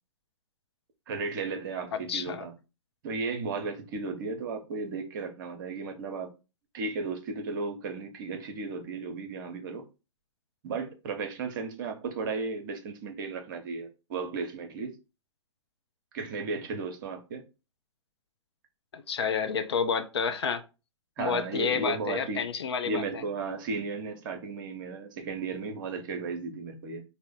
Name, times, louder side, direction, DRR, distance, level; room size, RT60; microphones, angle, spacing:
voice 1, 1.1-2.5 3.0-6.3 6.7-9.9 10.6-14.9 16.1-17.4 21.2-22.4 22.9-27.0, right 4 dB, 40° right, 0.8 m, -34 dB
voice 2, 1.9-2.5 18.9-20.6 21.2-23.2, left 6 dB, 55° left, 0.5 m, -30 dB
4.9 x 2.1 x 3.7 m
figure-of-eight pair, 115°, 16 cm